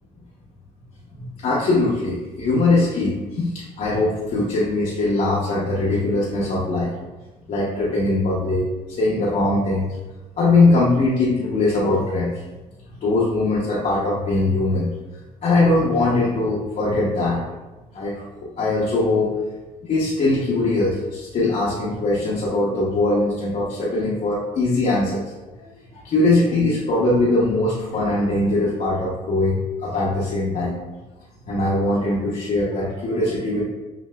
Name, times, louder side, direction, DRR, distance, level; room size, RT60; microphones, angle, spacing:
voice 1, 1.1-6.9 7.5-8.7 9.0-9.9 10.4-12.4 13.0-14.9 15.4-17.4 17.9-19.3 19.8-25.2 25.6-30.8 31.5-33.6, left 2 dB, 50° left, -7 dB, 0.8 m, -21 dB
5.7 x 2.7 x 2.3 m, 1.1 s
cardioid pair, 110°, 17 cm